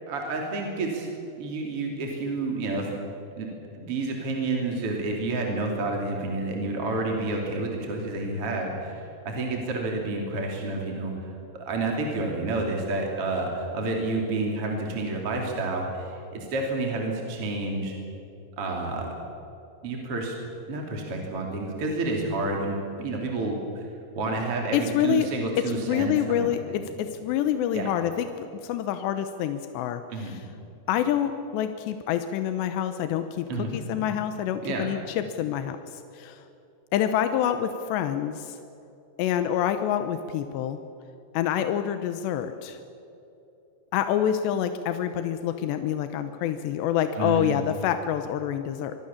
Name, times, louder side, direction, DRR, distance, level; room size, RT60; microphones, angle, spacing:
voice 1, 0.1-1.1 1.4-2.9 3.4-3.5 3.7-11.3 11.7-18.0 18.6-19.1 19.8-20.4 20.7-23.8 24.1-26.8 27.7-27.9 30.1-30.3 33.5-33.8 34.6-34.9 47.2-47.6, right 2 dB, 35° right, 0 dB, 3.4 m, -29 dB
voice 2, 24.7-25.3 25.7-30.4 30.9-33.5 33.7-35.8 36.2-36.4 36.9-38.6 39.2-40.8 41.3-42.8 43.9-49.0, left 10 dB, 90° left, 9 dB, 3.1 m, -27 dB
25.5 x 23.0 x 7.2 m, 2.8 s
omnidirectional pair, 5.0 m